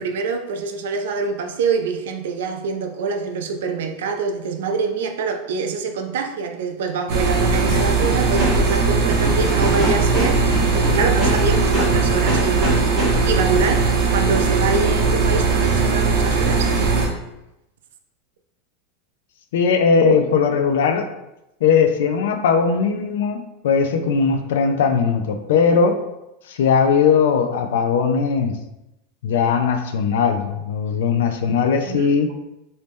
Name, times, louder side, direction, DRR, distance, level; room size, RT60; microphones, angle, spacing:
voice 1, 0.0-16.7 31.9-32.2, right 5 dB, 90° right, 6 dB, 0.5 m, -25 dB
sound 1, 7.1-17.1, right 4 dB, 45° right, 0.7 m, -19 dB
sound 2, 7.7-13.5, equal, 10° right, 1.0 m, -26 dB
voice 2, 19.5-21.0 21.6-26.0 26.5-28.6 29.2-32.3, left 6 dB, 80° left, 7 dB, 0.4 m, -19 dB
3.1 x 2.7 x 3.5 m, 0.89 s
supercardioid pair, 180°, 0 cm